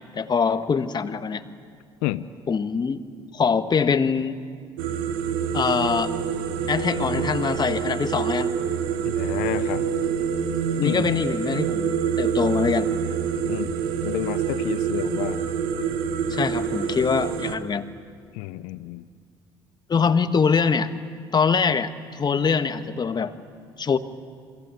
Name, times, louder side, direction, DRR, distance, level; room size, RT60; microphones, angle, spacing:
voice 1, 0.1-1.4 2.5-3.0 3.3-4.4 5.5-6.1 6.7-8.5 10.8-11.9 12.2-12.9 16.3-17.9 19.9-20.9 21.3-23.3 23.8-24.0, left 5 dB, 35° left, 9 dB, 1.7 m, -23 dB
sound 1, 4.8-17.6, right 7 dB, 75° right, 1.7 m, -26 dB
voice 2, 9.0-9.8 10.8-11.1 13.4-13.7 14.0-15.4 16.5-16.6 18.3-19.1, left 16 dB, 75° left, 14 dB, 0.7 m, -30 dB
28.0 x 22.5 x 8.6 m, 2.2 s
hypercardioid pair, 60°, 12 cm